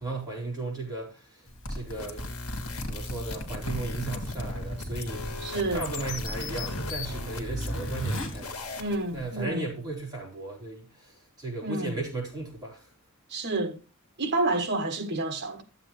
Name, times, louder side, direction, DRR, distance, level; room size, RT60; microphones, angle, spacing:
voice 1, 0.0-2.2 2.8-8.7 9.1-12.9, right 3 dB, 20° right, 4.2 m, -36 dB
Zipper (clothing), 1.5-9.4, equal, 60° left, 2.2 m, -36 dB
sound 1, 1.9-9.0, left 3 dB, 80° left, 1.5 m, -39 dB
voice 2, 5.4-5.9 8.8-9.7 11.6-12.0 13.3-13.8 14.2-15.6, right 2 dB, 50° right, 1.2 m, -29 dB
12.5 x 7.7 x 3.2 m
head